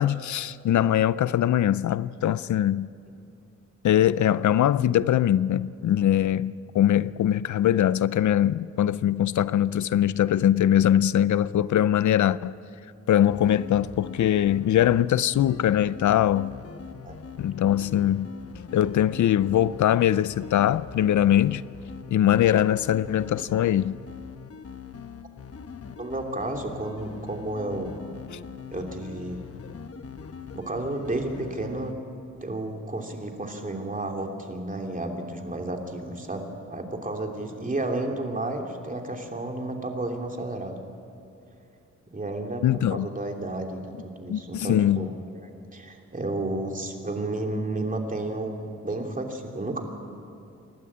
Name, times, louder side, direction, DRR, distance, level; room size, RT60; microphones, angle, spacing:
voice 1, 0.0-2.9 3.8-12.5 13.1-16.5 17.4-18.3 18.7-21.6 22.1-24.0 42.6-43.1 44.3-45.1, left 11 dB, 75° left, 0.5 m, -22 dB
sound 1, 13.3-31.9, left 6 dB, 50° left, 1.1 m, -42 dB
voice 2, 26.0-28.0 28.7-29.4 30.5-31.9 32.4-40.8 42.1-42.6 42.9-45.1 45.4-49.8, right 2 dB, 25° right, 3.0 m, -32 dB
28.0 x 12.5 x 8.6 m
cardioid pair, 85°, 30 cm